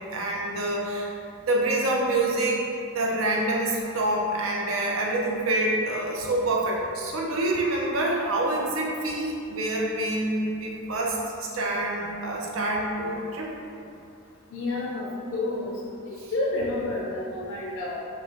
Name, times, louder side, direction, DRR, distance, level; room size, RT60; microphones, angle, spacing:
voice 1, 0.1-1.1 1.4-2.6 2.9-13.5 16.2-16.3, right 1 dB, 85° right, -2 dB, 0.6 m, -26 dB
voice 2, 14.5-15.7 16.3-18.0, left 2 dB, 70° left, -3 dB, 0.4 m, -29 dB
5.2 x 2.2 x 2.9 m, 2.6 s
head